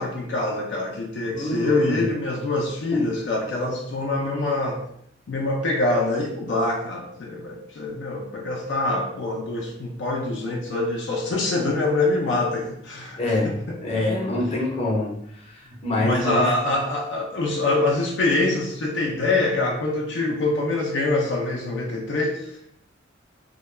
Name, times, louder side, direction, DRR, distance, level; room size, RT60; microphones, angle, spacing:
voice 1, 0.0-4.8 5.3-14.0 16.0-22.5, left 2 dB, 70° left, -1 dB, 0.4 m, -25 dB
voice 2, 1.3-2.0 2.9-3.1 13.2-15.1 15.4-16.4, left 1 dB, 35° left, -3 dB, 0.7 m, -25 dB
2.2 x 2.2 x 3.1 m, 0.71 s
head